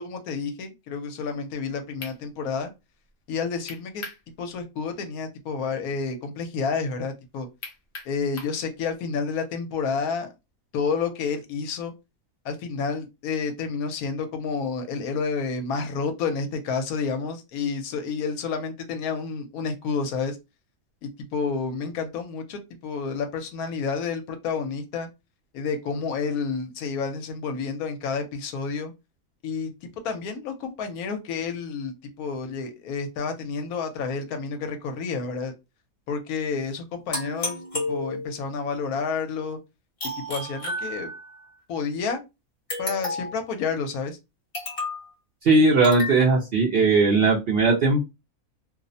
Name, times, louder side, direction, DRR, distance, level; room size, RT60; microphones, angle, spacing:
voice 1, 0.0-2.7 3.3-4.0 4.4-7.5 8.1-10.3 10.7-11.9 12.4-20.4 21.0-25.1 25.5-28.9 29.4-29.7 30.0-35.5 36.1-37.6 37.9-39.6 40.3-41.1 41.7-42.2 42.8-44.2, left 5 dB, 80° left, 6 dB, 1.1 m, -30 dB
sound 1, 1.6-1.7 2.0-2.2 3.7-4.2 4.6-4.7 7.6-8.6, left 3 dB, 55° left, 0.8 m, -39 dB
sound 2, 37.1-38.5 40.0-41.4 42.7-43.5 44.5-45.1 45.8-46.2, left 2 dB, 40° left, 1.1 m, -32 dB
voice 2, 45.4-48.1, right 3 dB, 65° right, -2 dB, 0.6 m, -19 dB
2.7 x 2.0 x 2.5 m, 0.24 s
omnidirectional pair, 1.6 m